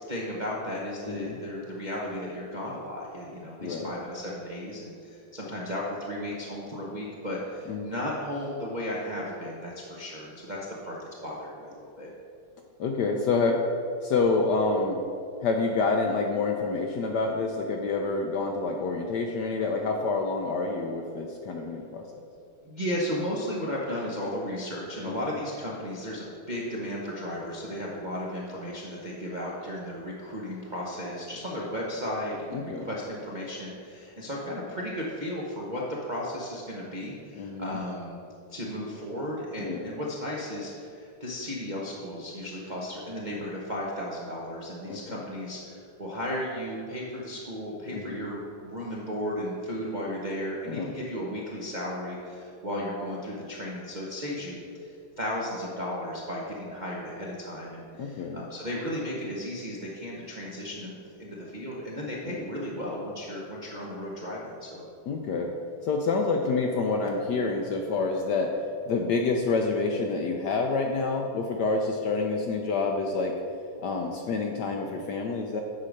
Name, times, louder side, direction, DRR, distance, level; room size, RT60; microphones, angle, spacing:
voice 1, 0.1-10.6 10.8-12.1 22.6-38.2 38.5-64.9, equal, 40° right, -5 dB, 0.6 m, -35 dB
voice 2, 1.0-1.4 3.6-4.0 7.7-7.9 12.8-13.6 14.0-15.0 15.4-22.0 25.1-25.3 32.5-32.9 37.4-37.8 39.6-39.9 44.9-45.2 47.9-48.3 50.7-50.9 58.0-58.4 62.2-62.4 65.1-65.5 65.8-68.5 68.9-73.4 73.8-75.6, left 3 dB, 70° left, 2 dB, 1.0 m, -28 dB
8.4 x 4.9 x 6.4 m, 2.6 s
omnidirectional pair, 2.3 m